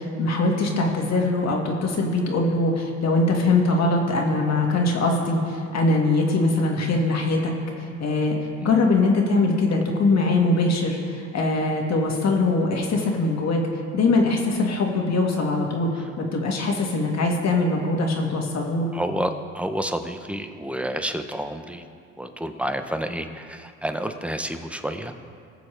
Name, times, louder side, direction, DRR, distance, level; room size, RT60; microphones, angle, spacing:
voice 1, 0.0-7.5 8.0-8.4 8.6-13.6 13.9-15.9 16.2-18.9, left 2 dB, 60° left, 1 dB, 1.8 m, -22 dB
voice 2, 18.9-21.8 22.2-25.1, equal, 5° right, 7 dB, 0.7 m, -29 dB
19.5 x 7.0 x 3.3 m, 2.3 s
cardioid pair, 90°, 30 cm